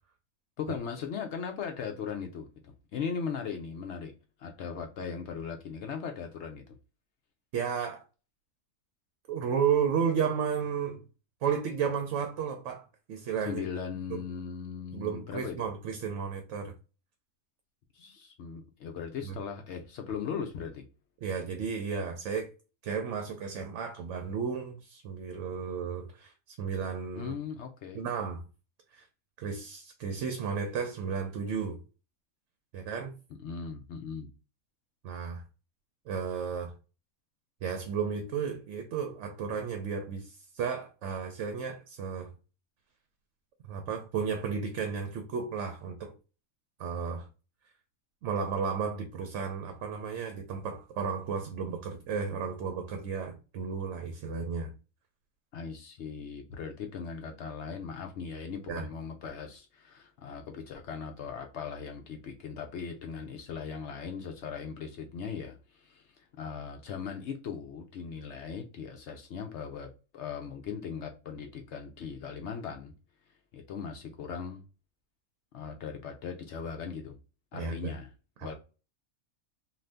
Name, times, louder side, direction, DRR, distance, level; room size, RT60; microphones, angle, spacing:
voice 1, 0.6-4.1 4.4-6.6 13.4-15.6 17.9-20.8 27.1-28.0 33.4-34.3 55.5-72.9 73.5-74.6 75.5-77.2 77.5-78.1 78.4-78.5, left 6 dB, 65° left, 0.8 m, -39 dB
voice 2, 7.5-8.0 9.3-11.0 11.4-13.6 14.1-14.2 14.9-16.7 19.2-19.3 21.2-22.5 22.8-27.4 27.9-28.4 28.9-29.0 29.4-31.8 32.7-33.1 35.0-35.4 36.1-36.7 37.6-42.3 43.7-46.1 46.8-47.3 48.2-54.7 58.7-58.9 77.5-77.9 78.4-78.5, right 6 dB, 65° right, 0.8 m, -33 dB
2.6 x 2.5 x 3.3 m
omnidirectional pair, 1.4 m